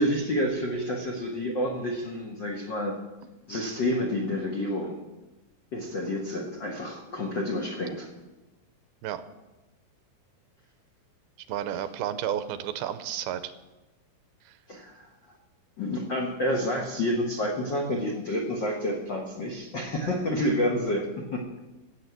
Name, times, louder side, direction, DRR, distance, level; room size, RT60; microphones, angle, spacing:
voice 1, 0.0-3.0 3.5-5.0 5.7-8.1 14.7-15.1 15.8-21.4, left 1 dB, 90° left, 0 dB, 1.0 m, -29 dB
voice 2, 11.5-13.5 14.5-14.6, right 10 dB, 85° right, 11 dB, 2.5 m, -31 dB
15.5 x 7.3 x 8.1 m, 1.1 s
omnidirectional pair, 4.5 m